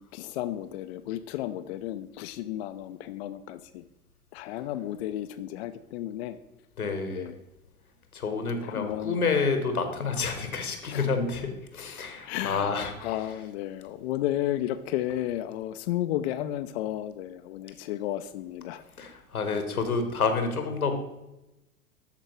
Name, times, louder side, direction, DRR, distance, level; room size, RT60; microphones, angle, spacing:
voice 1, 0.0-3.8 4.3-6.4 7.1-7.4 8.6-9.2 10.9-11.1 12.3-12.7 13.0-18.8 19.5-19.6, left 13 dB, 50° left, 9 dB, 0.4 m, -33 dB
voice 2, 6.8-7.3 8.1-13.1 19.0-20.9, left 4 dB, 85° left, 6 dB, 1.1 m, -29 dB
12.5 x 4.4 x 3.0 m, 0.96 s
figure-of-eight pair, 85°, 43 cm